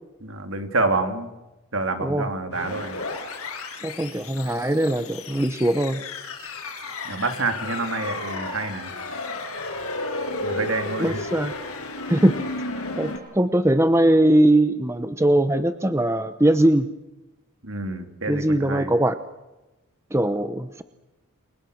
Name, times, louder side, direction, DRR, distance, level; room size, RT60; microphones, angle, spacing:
voice 1, 0.2-1.3 1.7-3.0 7.0-8.9 10.4-11.2 17.6-18.9, right 3 dB, 65° right, 6 dB, 3.2 m, -27 dB
sound 1, 2.5-13.2, left 2 dB, 85° left, 7.0 m, -33 dB
voice 2, 3.8-6.0 10.6-10.7 11.0-11.5 12.1-12.4 13.0-16.9 18.3-19.2 20.1-20.8, right 1 dB, 10° right, 10 dB, 0.9 m, -21 dB
30.0 x 24.0 x 6.6 m, 1.0 s
head